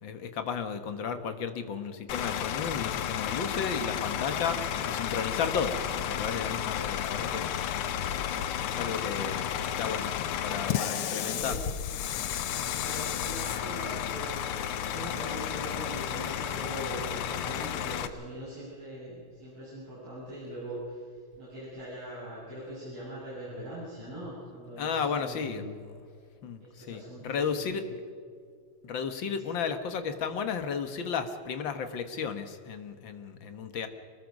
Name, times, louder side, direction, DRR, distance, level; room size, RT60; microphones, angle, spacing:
voice 1, 0.0-5.8 6.0-7.5 8.6-10.1 10.4-11.6 24.8-25.7 26.4-28.0 28.8-33.9, left 6 dB, 60° left, 8 dB, 2.1 m, -33 dB
Bus / Idling, 2.1-18.1, left 10 dB, 85° left, 1.8 m, -32 dB
voice 2, 9.0-9.4 10.7-11.6 12.8-25.7 26.6-27.8 29.4-29.5, right 1 dB, 85° right, -11 dB, 9.0 m, -42 dB
24.5 x 21.0 x 5.4 m, 2.2 s
omnidirectional pair, 2.4 m